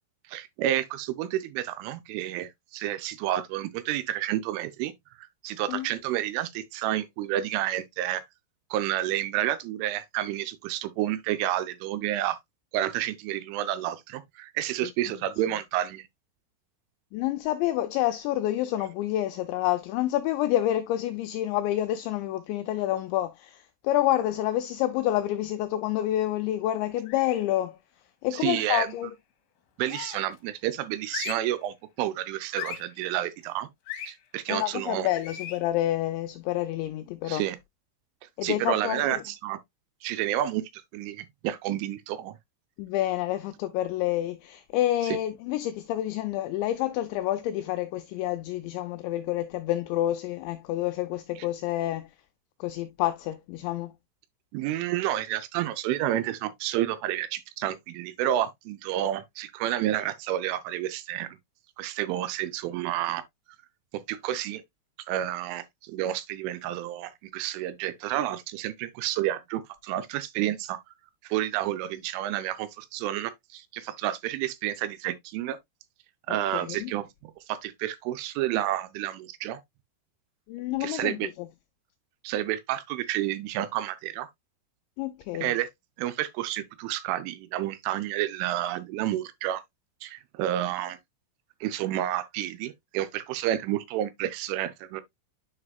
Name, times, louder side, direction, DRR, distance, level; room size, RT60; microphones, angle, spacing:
voice 1, 0.3-4.9 5.2-8.2 8.7-12.4 12.7-16.1 28.3-28.9 29.8-33.7 34.1-35.1 37.3-37.6 38.4-39.6 40.0-42.4 54.5-61.4 61.8-63.2 63.9-64.6 65.1-70.8 71.2-75.6 76.3-79.6 80.8-81.3 82.2-84.3 85.3-85.7 86.0-89.6 90.0-91.0 91.6-95.0, right 13 dB, 85° right, 3.1 m, -30 dB
voice 2, 17.1-27.8 28.2-29.1 34.5-37.4 38.4-39.2 42.8-52.1 52.6-53.9 76.5-76.9 80.5-81.5 85.0-85.5, left 14 dB, 90° left, 2.5 m, -28 dB
FX - Silbidos de aviso, 27.1-27.5 28.6-29.0 29.9-30.4 31.1-31.6 32.5-32.9 33.9-34.1 35.2-35.6, left 10 dB, 65° left, 3.0 m, -38 dB
9.7 x 4.8 x 2.2 m
omnidirectional pair, 5.7 m